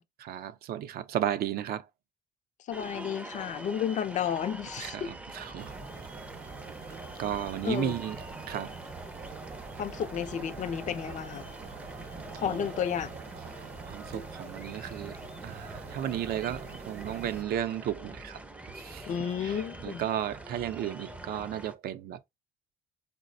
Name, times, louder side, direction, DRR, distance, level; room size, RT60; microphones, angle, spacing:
voice 1, 0.2-1.9 4.8-5.8 7.2-8.2 8.5-8.8 12.4-12.7 13.9-18.4 18.7-19.1 19.4-22.2, right 11 dB, 65° right, 0.5 m, -34 dB
voice 2, 2.7-5.1 7.6-8.0 9.8-11.5 12.3-13.1 19.1-20.0, left 8 dB, 45° left, 0.4 m, -32 dB
sound 1, 2.7-21.7, right 1 dB, 10° right, 0.5 m, -44 dB
sound 2, 5.6-17.4, right 5 dB, 40° right, 0.8 m, -45 dB
4.0 x 2.0 x 2.5 m
cardioid pair, 110°, 17 cm